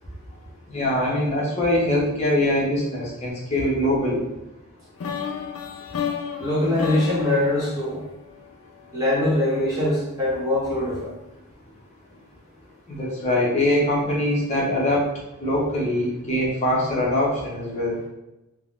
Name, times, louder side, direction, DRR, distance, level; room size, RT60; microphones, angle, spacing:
voice 1, 0.7-4.2 13.0-15.1 15.4-18.0, left 1 dB, 30° left, -5 dB, 0.7 m, -23 dB
sound 1, 5.0-9.0, left 7 dB, 70° left, 0.3 m, -32 dB
voice 2, 6.4-8.0 8.9-11.1, left 1 dB, 15° right, -8 dB, 1.0 m, -22 dB
3.5 x 2.1 x 2.4 m, 0.97 s
head